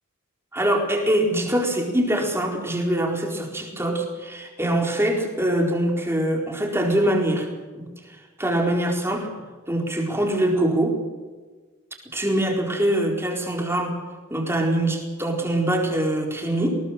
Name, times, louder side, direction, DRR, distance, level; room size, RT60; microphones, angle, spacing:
voice 1, 0.5-7.5 7.8-7.9 8.4-9.3 9.7-11.0 12.1-14.0 14.3-16.8, right 1 dB, 10° right, 1 dB, 4.3 m, -23 dB
20.5 x 19.0 x 7.6 m, 1.4 s
head